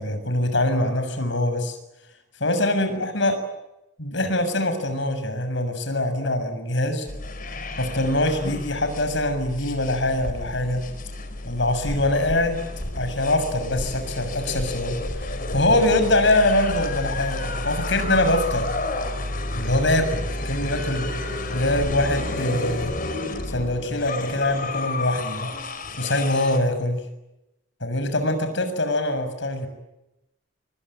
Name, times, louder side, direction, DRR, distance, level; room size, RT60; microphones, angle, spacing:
voice 1, 0.0-1.8 2.4-3.4 4.0-7.1 7.8-10.9 11.4-12.6 12.9-18.7 19.5-20.0 20.4-22.9 23.4-25.5 26.0-27.0 27.8-29.7, left 1 dB, 60° left, 8 dB, 6.8 m, -23 dB
sound 1, 7.1-26.6, left 2 dB, 45° left, 4.9 m, -31 dB
26.5 x 25.0 x 9.1 m, 0.92 s
head